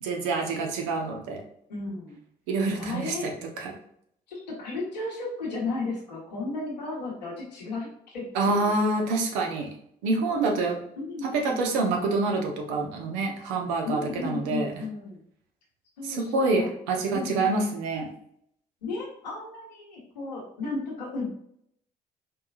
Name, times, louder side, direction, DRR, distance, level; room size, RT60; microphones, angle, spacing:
voice 1, 0.0-1.4 2.5-3.3 3.6-3.7 8.3-9.7 10.0-10.8 11.2-14.8 16.0-18.1, right 3 dB, 75° right, 2 dB, 0.8 m, -27 dB
voice 2, 1.7-2.2 2.8-3.3 4.3-8.3 8.5-8.7 10.3-10.5 11.0-11.6 13.8-15.2 16.0-16.7 17.1-17.6 18.8-21.3, left 3 dB, 90° left, -4 dB, 1.1 m, -34 dB
4.5 x 3.1 x 2.4 m, 0.69 s
hypercardioid pair, 50°, 21 cm